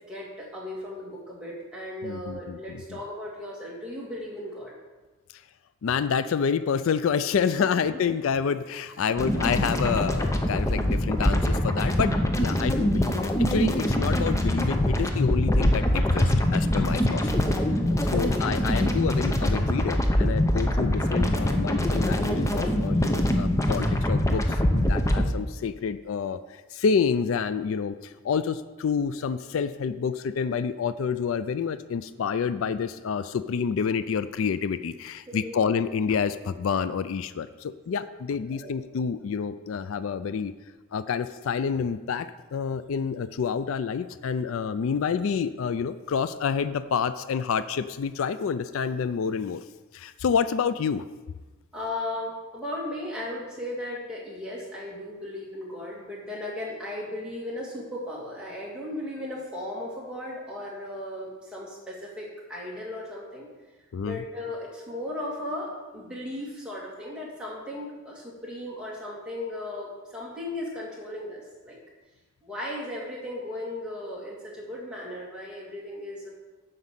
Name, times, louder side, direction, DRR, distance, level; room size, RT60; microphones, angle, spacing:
voice 1, 0.1-4.7 9.0-9.1 17.9-18.3 35.3-35.6 38.5-38.7 51.7-63.5 64.0-71.8 72.4-76.3, left 1 dB, 5° right, -5 dB, 2.1 m, -36 dB
voice 2, 2.0-2.8 5.8-17.2 18.1-40.5 40.9-49.6 49.9-51.0 63.9-64.2, left 6 dB, 75° left, 13 dB, 0.4 m, -28 dB
sound 1, 9.2-25.3, left 1 dB, 15° left, 0.6 m, -24 dB
7.8 x 5.3 x 7.4 m, 1.2 s
head